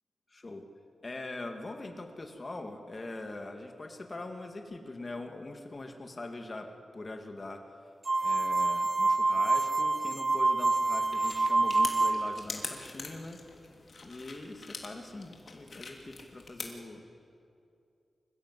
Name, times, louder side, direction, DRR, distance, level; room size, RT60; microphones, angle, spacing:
voice 1, 0.3-0.6 1.0-6.7 6.9-7.6 8.2-13.4 14.0-17.0, left 2 dB, 35° left, 4 dB, 2.4 m, -42 dB
sound 1, 8.1-12.4, right 3 dB, 30° right, 0.5 m, -27 dB
sound 2, 10.7-16.7, left 3 dB, 55° left, 3.0 m, -44 dB
25.5 x 16.0 x 7.7 m, 2.6 s
cardioid pair, 75°, 0 cm